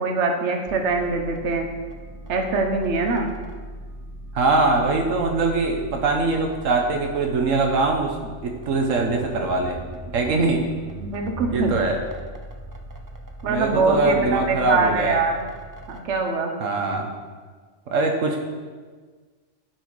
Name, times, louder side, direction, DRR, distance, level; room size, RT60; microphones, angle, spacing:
voice 1, 0.0-1.7 2.3-3.3 11.0-11.8 13.4-15.4 15.9-16.5, right 3 dB, 65° right, 3 dB, 1.3 m, -23 dB
sound 1, 0.7-16.0, right 1 dB, 25° right, 0.5 m, -39 dB
voice 2, 4.3-8.1 8.4-9.8 10.1-10.6 11.5-12.0 13.5-15.2 16.6-17.1 17.9-18.4, right 3 dB, 85° right, 2 dB, 1.4 m, -22 dB
11.0 x 6.2 x 4.7 m, 1.5 s
omnidirectional pair, 1.3 m